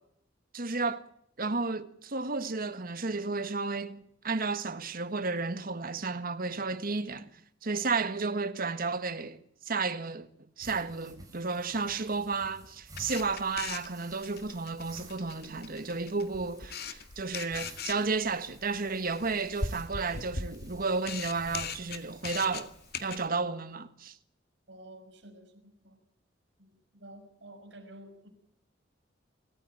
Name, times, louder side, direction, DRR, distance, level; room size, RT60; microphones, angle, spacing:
voice 1, 0.5-1.0 1.4-7.3 7.6-9.4 9.7-10.3 10.6-22.7 23.0-24.2, right 4 dB, 50° right, 1.6 m, -32 dB
sound 1, 10.6-23.1, right 2 dB, 20° right, 6.4 m, -53 dB
Camera, 12.9-23.3, left 4 dB, 55° left, 2.0 m, -40 dB
voice 2, 24.7-26.0 26.6-28.3, right 1 dB, 70° right, 6.1 m, -51 dB
25.0 x 15.0 x 9.0 m
head